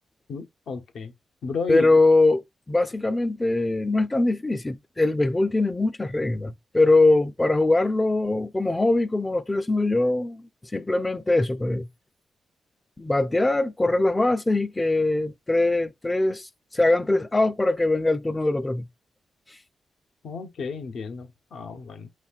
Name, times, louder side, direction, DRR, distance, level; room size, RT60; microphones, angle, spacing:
voice 1, 0.3-1.1 1.4-2.0 20.2-22.1, left 5 dB, 75° left, 0.8 m, -33 dB
voice 2, 1.7-11.9 13.0-16.5 16.7-18.9, left 2 dB, 20° left, 0.4 m, -22 dB
5.4 x 4.1 x 2.4 m
cardioid pair, 75°, 0 cm